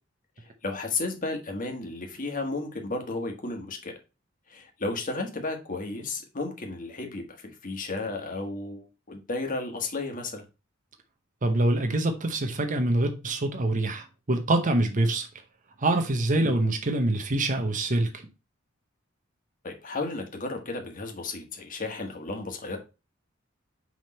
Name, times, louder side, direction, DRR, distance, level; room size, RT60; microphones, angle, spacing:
voice 1, 0.4-3.9 4.5-10.4 19.6-22.8, left 3 dB, 40° left, 1.5 m, -33 dB
voice 2, 11.4-15.3 15.8-18.2, right 2 dB, 40° right, 0.9 m, -25 dB
6.2 x 3.6 x 4.2 m
head